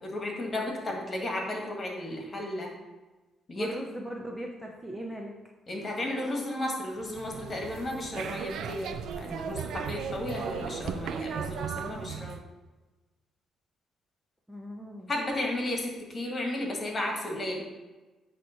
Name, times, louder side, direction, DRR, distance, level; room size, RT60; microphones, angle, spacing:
voice 1, 0.0-2.7 3.5-3.7 5.7-12.3 15.1-17.6, left 1 dB, 35° left, 0 dB, 1.9 m, -33 dB
voice 2, 3.5-5.3 14.5-15.1, equal, 5° right, 0 dB, 0.9 m, -39 dB
sound 1, 7.0-12.4, right 7 dB, 75° right, 0.5 m, -36 dB
8.8 x 3.2 x 5.9 m, 1.2 s
cardioid pair, 90°, 0 cm